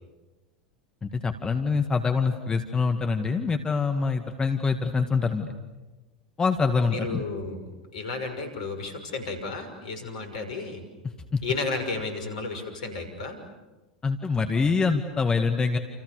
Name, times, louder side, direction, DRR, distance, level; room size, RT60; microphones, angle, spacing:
voice 1, 1.0-5.5 6.4-7.2 11.3-11.4 14.0-15.8, left 4 dB, 20° left, 6 dB, 2.1 m, -25 dB
voice 2, 6.9-10.8 11.4-13.4, left 3 dB, 65° left, 7 dB, 6.2 m, -33 dB
29.5 x 29.5 x 6.9 m, 1.2 s
figure-of-eight pair, 85°, 4 cm